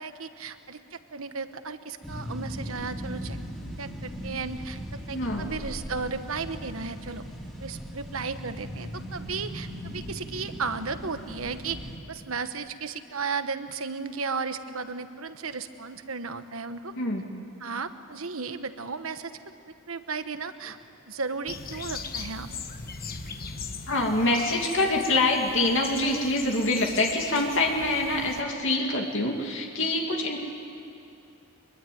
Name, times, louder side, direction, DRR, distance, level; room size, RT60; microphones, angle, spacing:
voice 1, 0.0-3.4 3.8-7.2 7.6-11.8 12.1-16.9 17.6-19.3 19.9-20.8 21.1-22.5, right 4 dB, 70° right, 10 dB, 1.2 m, -34 dB
sound 1, 2.0-12.0, equal, ahead, 3.3 m, -38 dB
voice 2, 5.1-5.5 17.0-17.2 23.9-30.4, left 2 dB, 60° left, 1 dB, 2.5 m, -25 dB
sound 2, 21.5-28.4, left 5 dB, 45° left, 1.5 m, -39 dB
24.0 x 22.5 x 9.3 m, 2.8 s
head